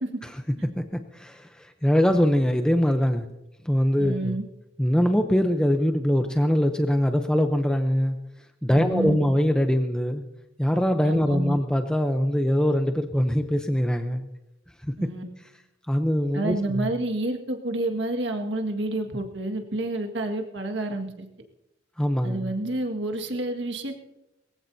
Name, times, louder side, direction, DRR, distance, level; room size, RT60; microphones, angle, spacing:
voice 1, 0.2-3.3 3.6-4.4 4.8-8.2 8.6-10.2 10.6-14.3 14.8-14.9 15.9-16.9 22.0-22.5, equal, 5° left, 5 dB, 0.7 m, -23 dB
voice 2, 4.0-4.4 8.7-9.2 11.1-11.6 15.0-15.2 16.3-21.3 22.2-24.0, right 2 dB, 70° right, 3 dB, 1.9 m, -29 dB
22.5 x 15.5 x 2.8 m, 0.90 s
head